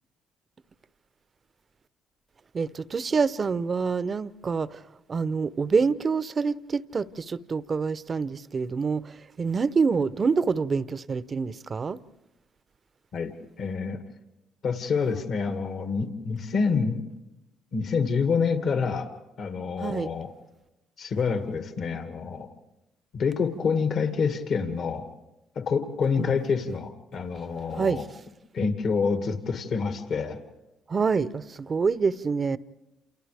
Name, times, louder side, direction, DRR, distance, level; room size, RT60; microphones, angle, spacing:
voice 1, 2.5-4.8 5.1-12.0 19.8-20.1 26.2-26.3 27.7-28.0 30.9-32.6, right 5 dB, 40° right, 0.7 m, -26 dB
voice 2, 13.6-14.0 14.6-17.0 17.7-19.1 19.4-20.3 21.0-22.5 23.1-25.1 25.6-28.0 28.5-30.4, left 5 dB, 65° left, 2.1 m, -27 dB
28.5 x 28.5 x 3.5 m
supercardioid pair, 60°, 0 cm